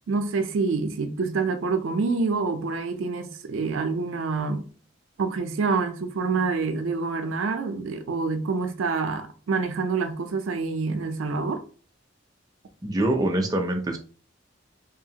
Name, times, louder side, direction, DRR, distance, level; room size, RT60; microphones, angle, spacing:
voice 1, 0.1-4.7 5.2-11.6, right 4 dB, 85° right, 0.4 m, -27 dB
voice 2, 12.8-14.0, right 1 dB, 20° right, 0.4 m, -24 dB
2.8 x 2.4 x 2.8 m
head